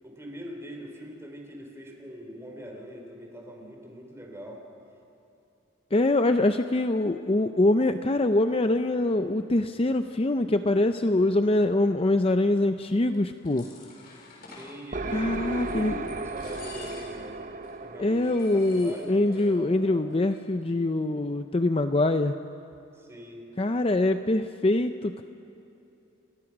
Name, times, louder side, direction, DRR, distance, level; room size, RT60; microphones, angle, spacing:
voice 1, 0.0-4.6 14.5-17.4 17.8-20.1 22.9-23.5, equal, 15° right, 1 dB, 4.0 m, -43 dB
voice 2, 5.9-13.7 15.1-16.0 18.0-22.3 23.6-25.2, left 2 dB, 30° left, 8 dB, 0.6 m, -24 dB
sound 1, 13.1-14.8 15.3-15.8 16.1-17.3 17.6-17.7 18.1-19.5 19.7-19.8 20.1-20.6, left 4 dB, 50° left, 6.1 m, -49 dB
sound 2, 14.9-20.5, right 3 dB, 40° right, 0.9 m, -36 dB
29.0 x 22.5 x 6.1 m, 2.9 s
head